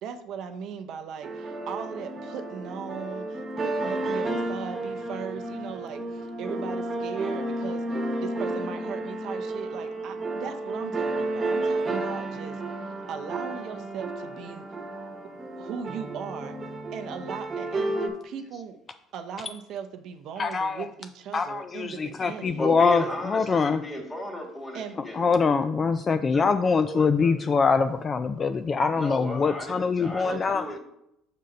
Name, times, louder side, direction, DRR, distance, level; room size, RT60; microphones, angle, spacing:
voice 1, 0.0-14.7 15.3-16.6 16.9-18.8 19.1-22.7 24.7-25.0 30.2-30.7, right 7 dB, 60° right, 7 dB, 0.6 m, -38 dB
sound 1, 1.2-18.1, right 2 dB, 30° right, 1.1 m, -32 dB
voice 2, 20.4-20.8 21.3-23.8 25.1-30.6, left 5 dB, 35° left, 9 dB, 0.3 m, -24 dB
voice 3, 22.6-25.3 26.3-26.5 26.8-27.3 28.9-30.8, left 1 dB, 15° left, -1 dB, 2.2 m, -35 dB
5.4 x 3.9 x 5.2 m, 0.80 s
hypercardioid pair, 75°, 0 cm